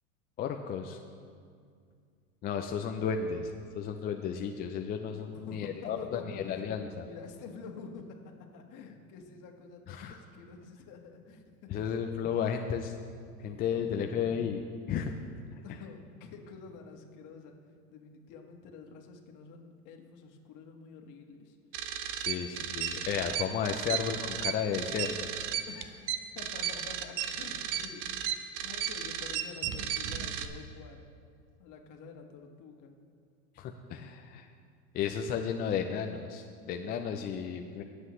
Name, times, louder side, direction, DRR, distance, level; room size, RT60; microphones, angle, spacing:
voice 1, 0.4-1.0 2.4-7.1 9.9-10.2 11.7-12.9 13.4-15.1 22.2-25.3 33.6-34.5 34.9-37.8, left 7 dB, 20° left, 4 dB, 0.4 m, -33 dB
voice 2, 5.3-6.6 7.0-12.0 13.4-14.3 15.5-17.6 17.9-21.6 25.7-28.3 28.5-31.1 31.6-32.9, left 5 dB, 45° left, 3 dB, 1.7 m, -48 dB
sound 1, 21.7-30.4, right 10 dB, 45° right, 0.8 m, -34 dB
20.5 x 8.0 x 3.2 m, 2.2 s
hypercardioid pair, 105°, 45 cm